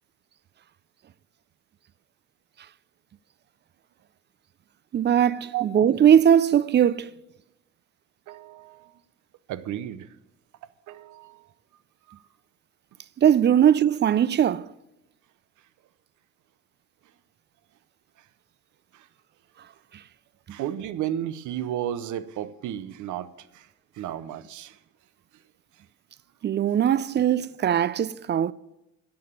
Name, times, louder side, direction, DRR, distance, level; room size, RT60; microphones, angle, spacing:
voice 1, 4.9-7.1 13.2-14.7 26.4-28.5, right 9 dB, 35° right, 0.4 m, -20 dB
voice 2, 8.3-8.9 9.5-10.1 10.9-11.5 18.9-19.1 20.5-23.7 23.9-24.8, right 11 dB, 80° right, 0.7 m, -33 dB
10.5 x 6.8 x 7.4 m
cardioid pair, 90°, 30 cm